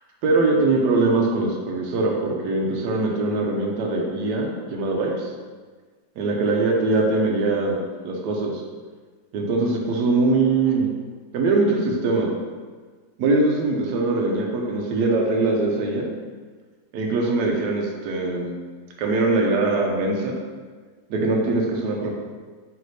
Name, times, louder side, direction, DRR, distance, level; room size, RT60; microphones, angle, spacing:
voice 1, 0.2-5.3 6.2-7.8 8.0-8.5 9.3-10.9 11.3-12.3 13.2-16.1 16.9-18.5 19.0-20.4 21.1-22.1, right 3 dB, 75° right, 0 dB, 1.1 m, -22 dB
3.9 x 3.2 x 3.1 m, 1.5 s
omnidirectional pair, 1.9 m